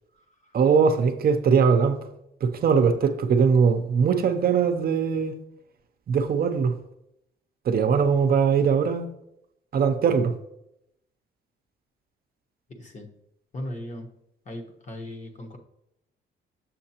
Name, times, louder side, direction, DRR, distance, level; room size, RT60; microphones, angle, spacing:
voice 1, 0.5-2.0 2.4-5.3 6.1-6.7 7.7-9.1 9.7-10.3, right 6 dB, 50° right, 0.6 m, -21 dB
voice 2, 12.7-13.1 13.5-14.1 14.5-15.6, left 1 dB, 35° left, 1.1 m, -37 dB
7.2 x 6.4 x 2.9 m
cardioid pair, 90°, 20 cm